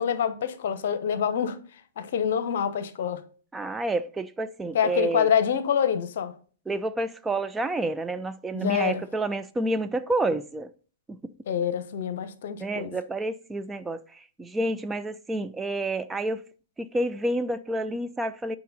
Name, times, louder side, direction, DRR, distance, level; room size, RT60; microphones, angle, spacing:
voice 1, 0.0-1.6 2.0-3.2 4.7-6.3 8.5-9.0 11.5-12.9, left 8 dB, 50° left, 0.9 m, -26 dB
voice 2, 3.5-5.3 6.7-10.7 12.6-16.5 16.8-18.6, right 2 dB, 10° right, 0.3 m, -29 dB
9.0 x 4.9 x 3.9 m
figure-of-eight pair, 110°, 0 cm